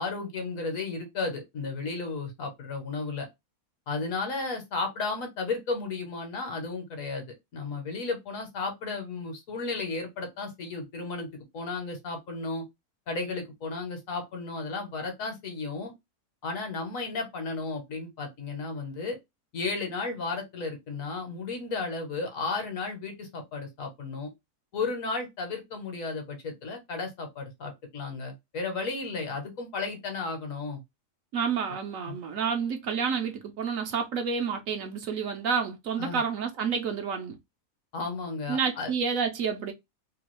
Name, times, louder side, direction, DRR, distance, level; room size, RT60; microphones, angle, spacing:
voice 1, 0.0-3.3 3.9-12.6 13.1-15.9 16.4-19.2 19.5-24.3 24.7-30.8 32.1-32.2 36.0-36.2 37.9-38.9, left 3 dB, 65° left, 1.2 m, -34 dB
voice 2, 31.3-37.4 38.5-39.7, right 6 dB, 70° right, 0.9 m, -29 dB
2.9 x 2.3 x 3.0 m
omnidirectional pair, 1.6 m